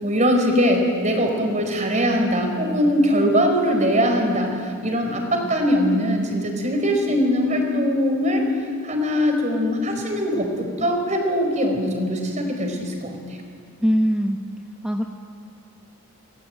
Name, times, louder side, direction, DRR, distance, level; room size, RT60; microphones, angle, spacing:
voice 1, 0.0-8.4 8.8-10.5 10.8-13.2, equal, 35° right, 3 dB, 5.0 m, -21 dB
voice 2, 13.8-14.4 14.8-15.0, equal, 5° right, 1 dB, 1.1 m, -20 dB
29.0 x 21.5 x 9.1 m, 2.3 s
head